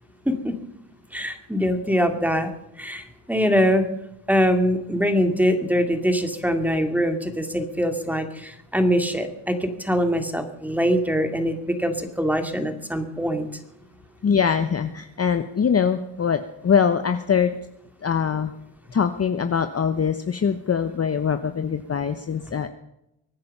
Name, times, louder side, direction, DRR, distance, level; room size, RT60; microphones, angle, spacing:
voice 1, 1.1-3.8 4.3-13.5, equal, 5° right, 6 dB, 2.4 m, -23 dB
voice 2, 14.2-17.6 18.0-18.5 18.9-22.7, left 7 dB, 30° left, 9 dB, 0.9 m, -23 dB
24.0 x 9.5 x 5.5 m, 0.84 s
cardioid pair, 90°, 46 cm